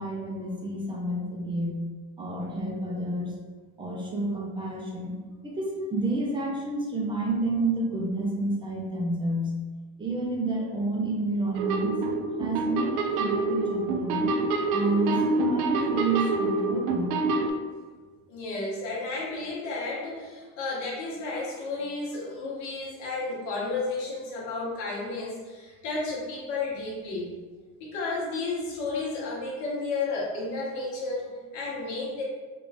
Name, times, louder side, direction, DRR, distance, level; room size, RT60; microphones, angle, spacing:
voice 1, 0.0-1.8 2.2-3.3 3.8-5.1 5.4-9.6 10.0-12.0 12.4-14.3 14.7-17.2, right 2 dB, 15° right, -2 dB, 0.5 m, -29 dB
sound 1, 11.6-17.5, right 3 dB, 65° right, 0.5 m, -27 dB
voice 2, 18.3-27.3 27.8-32.2, left 3 dB, 55° left, -6 dB, 1.2 m, -32 dB
3.5 x 2.4 x 3.4 m, 1.4 s
cardioid pair, 155°, 35 cm